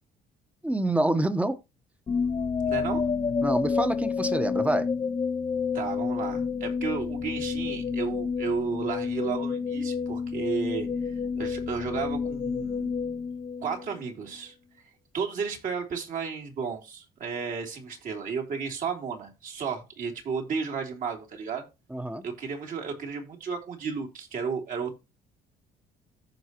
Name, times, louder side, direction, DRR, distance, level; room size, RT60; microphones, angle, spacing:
voice 1, 0.6-1.6 3.4-4.9 21.9-22.2, right 1 dB, 10° right, 1.1 m, -26 dB
sound 1, 2.1-14.1, left 5 dB, 25° left, 0.6 m, -29 dB
voice 2, 2.6-3.1 5.7-12.9 13.6-14.5 15.1-21.7 22.2-25.0, right 5 dB, 55° right, 3.2 m, -33 dB
14.5 x 5.5 x 3.0 m
cardioid pair, 110°, 17 cm